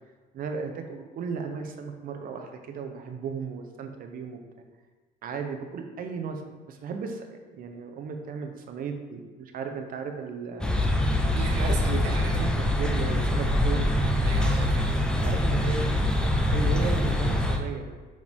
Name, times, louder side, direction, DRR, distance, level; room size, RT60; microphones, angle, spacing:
voice 1, 0.3-4.4 5.2-6.4 6.7-10.8 11.6-13.9 15.2-15.9 16.5-17.9, right 6 dB, 55° right, 5 dB, 0.9 m, -35 dB
sound 1, 10.6-17.6, left 1 dB, 5° left, 0.7 m, -24 dB
voice 2, 11.3-12.3 14.2-15.3, right 4 dB, 85° right, 2 dB, 0.9 m, -37 dB
6.2 x 4.7 x 3.6 m, 1.4 s
cardioid pair, 110°, 17 cm